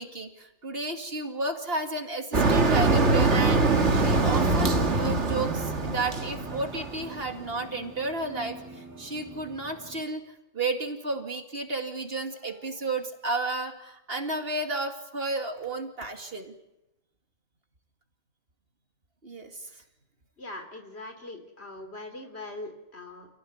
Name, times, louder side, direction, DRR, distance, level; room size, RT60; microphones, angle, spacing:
voice 1, 0.0-3.6 3.9-10.2 10.5-16.5 19.2-19.7, right 2 dB, 55° right, 5 dB, 2.6 m, -32 dB
Motor vehicle (road), 2.3-7.3, right 3 dB, 75° right, 2.3 m, -23 dB
sound 1, 3.4-10.0, right 1 dB, 15° right, 3.5 m, -44 dB
voice 2, 20.4-23.3, left 2 dB, 60° left, 6 dB, 3.9 m, -41 dB
28.5 x 17.0 x 9.5 m, 0.95 s
omnidirectional pair, 1.2 m